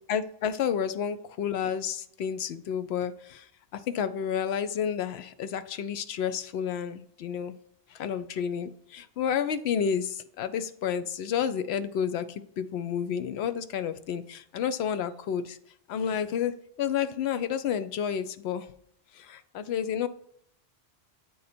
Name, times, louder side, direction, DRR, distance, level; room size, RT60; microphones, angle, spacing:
voice 1, 0.1-7.5 7.9-15.6 15.9-18.7 19.1-20.1, left 8 dB, 90° left, 12 dB, 0.8 m, -30 dB
8.4 x 3.9 x 4.2 m, 0.69 s
omnidirectional pair, 1.0 m